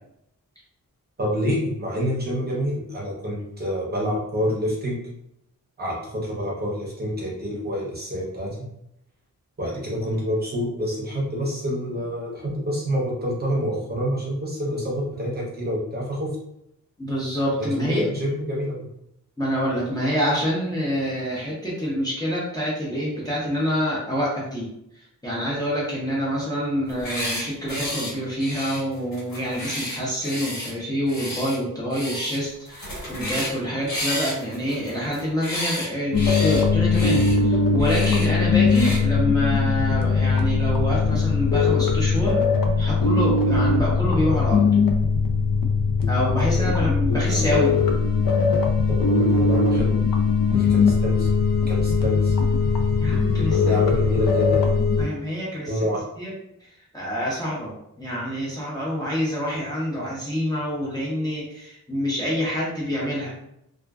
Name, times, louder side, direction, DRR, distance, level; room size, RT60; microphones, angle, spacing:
voice 1, 1.2-5.0 5.8-8.5 9.6-16.3 17.6-18.9 46.6-46.7 47.1-47.6 48.9-50.0 50.5-51.3 51.7-52.4 53.6-54.6 55.7-56.0, equal, 30° right, -4 dB, 0.7 m, -27 dB
voice 2, 17.0-18.0 19.4-42.4 42.8-44.6 46.1-47.8 53.0-53.8 55.0-55.8 56.2-56.3 56.6-63.3, equal, 10° left, -7 dB, 0.5 m, -26 dB
sound 1, 26.9-27.4 27.7-28.1 28.4-30.7 31.1-31.6 31.9-32.4 32.6-33.6 33.9-35.9 36.1-36.6 36.9-37.3 37.8-38.3 38.7-39.0, left 1 dB, 65° left, 1.2 m, -31 dB
sound 2, 36.1-55.0, left 4 dB, 80° left, 0.5 m, -20 dB
2.4 x 2.3 x 2.2 m, 0.78 s
wide cardioid pair, 170°, 34 cm